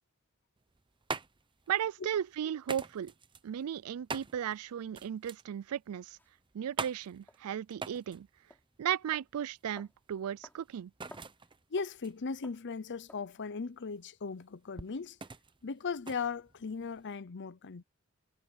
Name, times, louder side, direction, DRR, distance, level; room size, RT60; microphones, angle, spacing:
sound 1, 0.6-17.1, right 4 dB, 20° right, 0.7 m, -45 dB
voice 1, 1.7-3.1 3.4-6.2 6.5-8.3 8.8-10.9, right 9 dB, 85° right, 0.4 m, -35 dB
sound 2, 6.2-6.3 7.3-7.4 7.9-8.1 8.5-8.7 9.1-9.3 9.8-10.0 10.4-10.6 10.9-11.3 11.8-11.9 12.4-12.7 13.1-13.3, left 1 dB, 10° left, 4.5 m, -54 dB
voice 2, 11.7-15.2 15.6-17.8, left 5 dB, 55° left, 0.7 m, -38 dB
head